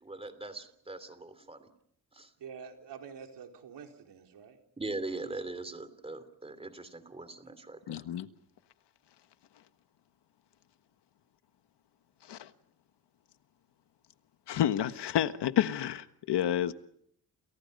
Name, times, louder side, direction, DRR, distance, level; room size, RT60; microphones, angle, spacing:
voice 1, 0.0-1.7 2.1-2.3 4.8-8.0, right 2 dB, 15° right, 3.0 m, -41 dB
voice 2, 2.4-4.6, right 6 dB, 90° right, 4.4 m, -47 dB
voice 3, 7.9-8.3 12.3-12.5 14.5-16.7, left 10 dB, 90° left, 1.5 m, -29 dB
29.5 x 29.0 x 5.5 m
wide cardioid pair, 145°, 40 cm